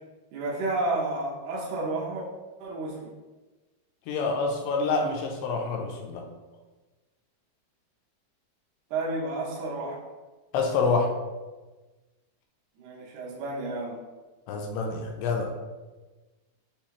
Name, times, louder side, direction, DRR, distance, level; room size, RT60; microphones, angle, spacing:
voice 1, 0.3-2.2 2.6-3.1 8.9-10.0 12.8-14.0, right 2 dB, 75° right, -4 dB, 1.8 m, -31 dB
voice 2, 4.1-6.2 10.5-11.1 14.5-15.5, left 4 dB, 85° left, 2 dB, 2.6 m, -27 dB
7.0 x 2.3 x 2.9 m, 1.2 s
omnidirectional pair, 4.6 m